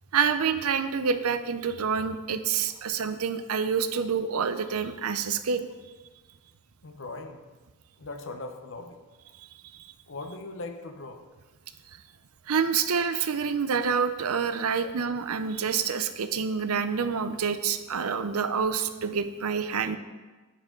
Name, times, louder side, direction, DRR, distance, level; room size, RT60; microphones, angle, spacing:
voice 1, 0.1-5.7 9.8-9.9 12.5-20.0, right 6 dB, 85° right, 11 dB, 0.6 m, -27 dB
voice 2, 6.8-7.4 8.0-9.0 10.1-11.2 14.7-14.9, left 2 dB, 60° left, 6 dB, 0.8 m, -39 dB
9.9 x 7.3 x 3.8 m, 1.3 s
head